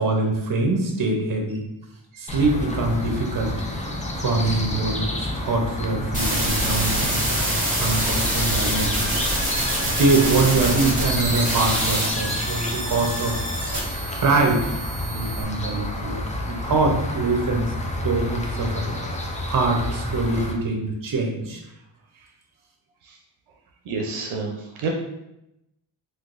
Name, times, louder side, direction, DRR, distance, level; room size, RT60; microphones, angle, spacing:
voice 1, 0.0-1.6 2.2-3.5 4.2-9.3 9.5-13.5 14.2-14.7 15.0-17.7 18.0-19.0 19.2-21.6, right 3 dB, 40° right, 1 dB, 0.8 m, -24 dB
sound 1, 2.3-20.5, left 1 dB, 15° left, 0.5 m, -29 dB
sound 2, 6.1-15.4, right 1 dB, 15° right, 1.3 m, -26 dB
voice 2, 23.9-24.9, right 4 dB, 80° right, 0 dB, 0.6 m, -31 dB
3.7 x 2.6 x 2.5 m, 0.87 s
cardioid pair, 80°, 49 cm